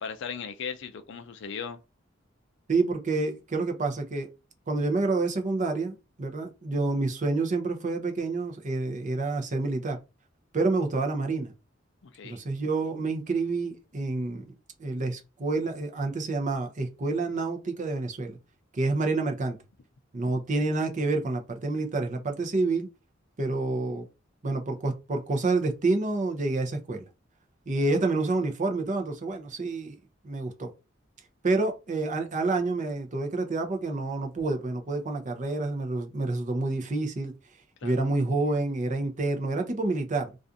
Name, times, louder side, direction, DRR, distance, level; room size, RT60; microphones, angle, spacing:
voice 1, 0.0-1.8 12.0-12.4 37.8-38.0, left 6 dB, 65° left, 0.4 m, -37 dB
voice 2, 2.7-4.3 4.7-10.0 10.5-11.5 12.2-14.4 14.8-18.4 18.7-19.6 20.1-22.9 23.4-24.1 24.4-27.0 27.7-30.0 30.2-30.7 31.4-37.3 37.8-40.4, right 3 dB, 40° right, 0.6 m, -28 dB
2.4 x 2.4 x 2.6 m
head